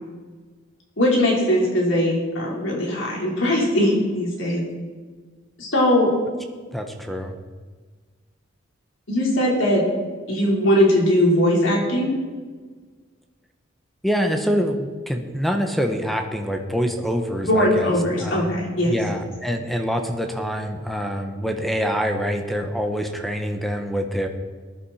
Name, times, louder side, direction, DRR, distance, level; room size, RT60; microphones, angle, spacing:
voice 1, 1.0-4.6 5.6-6.1 9.1-9.8 10.3-12.1 17.4-18.9, left 1 dB, 70° left, -3 dB, 4.2 m, -20 dB
voice 2, 6.7-7.4 14.0-17.9 18.2-18.6 18.9-24.3, equal, ahead, 4 dB, 1.1 m, -25 dB
19.5 x 11.0 x 4.3 m, 1.4 s
head